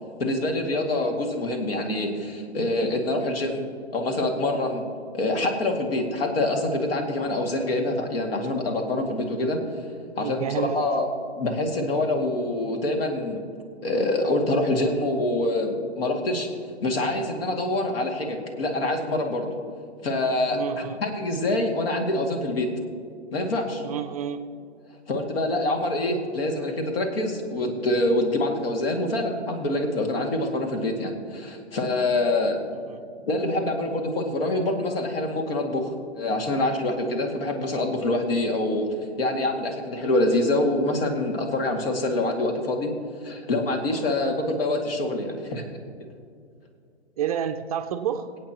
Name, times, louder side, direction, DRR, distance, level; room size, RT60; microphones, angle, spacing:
voice 1, 0.2-3.7 3.9-4.8 5.1-9.6 10.2-11.1 11.4-13.4 13.8-16.5 16.8-19.5 20.0-22.7 23.3-23.8 25.1-32.6 33.3-35.9 36.2-38.9 39.2-42.9 43.2-45.6, left 2 dB, 55° left, 3 dB, 2.4 m, -25 dB
voice 2, 10.2-10.8 20.5-21.0 23.8-24.4 32.7-33.0 47.2-48.3, right 9 dB, 35° right, 8 dB, 0.6 m, -29 dB
26.0 x 8.7 x 3.0 m, 2.3 s
hypercardioid pair, 140°, 34 cm